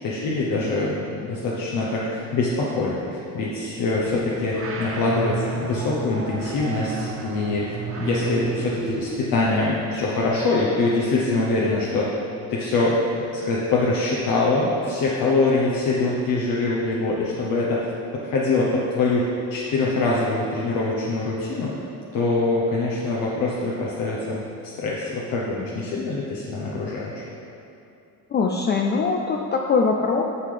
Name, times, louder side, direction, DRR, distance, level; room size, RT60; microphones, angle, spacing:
voice 1, 0.0-12.1 12.5-17.9 18.1-21.8 22.1-24.4 24.6-27.2, left 3 dB, 65° left, -5 dB, 1.0 m, -24 dB
sound 1, 3.8-9.4, right 4 dB, 35° right, 0.9 m, -32 dB
voice 2, 28.3-30.2, left 4 dB, 30° left, 1 dB, 0.4 m, -22 dB
9.7 x 5.6 x 3.4 m, 2.8 s
cardioid pair, 120°, 36 cm